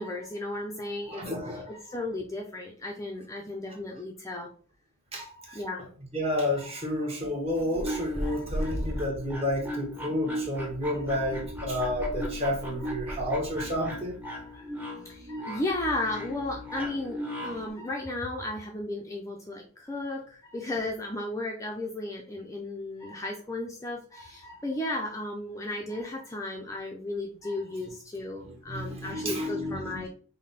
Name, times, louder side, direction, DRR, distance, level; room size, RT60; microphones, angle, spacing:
voice 1, 0.0-1.2 1.7-4.5 5.1-5.9 6.6-6.7 8.3-8.7 11.1-11.3 12.8-12.9 14.2-14.7 15.0-30.1, left 2 dB, 15° left, 0 dB, 0.5 m, -35 dB
voice 2, 1.1-1.7 5.1-5.3 5.5-5.6 6.1-14.2 28.4-30.1, left 1 dB, 30° right, -1 dB, 1.2 m, -31 dB
sound 1, 7.4-17.7, equal, 10° right, 0.8 m, -36 dB
5.3 x 2.2 x 4.1 m, 0.43 s
head